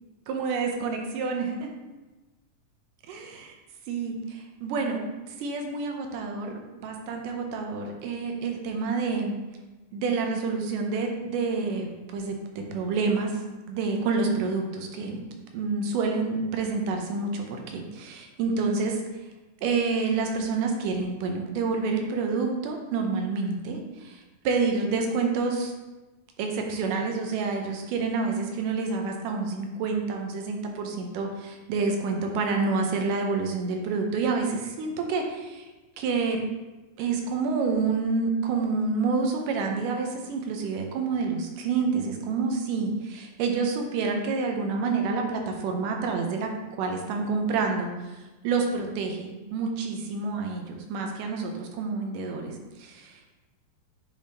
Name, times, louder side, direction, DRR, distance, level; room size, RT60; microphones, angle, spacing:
voice 1, 0.3-1.7 3.1-3.5 3.9-5.0 5.3-9.3 9.9-13.4 13.7-15.2 15.5-19.0 19.6-25.7 26.4-35.7 36.0-36.4 37.0-53.3, right 4 dB, 80° right, 3 dB, 2.2 m, -28 dB
10.0 x 3.5 x 2.7 m, 1.1 s
omnidirectional pair, 3.9 m